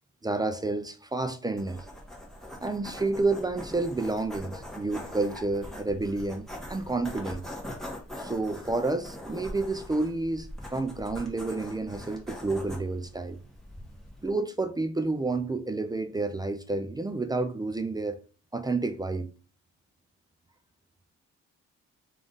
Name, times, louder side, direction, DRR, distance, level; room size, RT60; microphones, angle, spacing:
voice 1, 0.2-1.8 2.6-7.4 8.2-13.4 14.2-18.2 18.5-19.3, right 3 dB, 15° right, 0.3 m, -30 dB
sound 1, 1.6-14.3, left 1 dB, ahead, 1.2 m, -42 dB
3.4 x 2.5 x 3.8 m
cardioid pair, 90°, 30 cm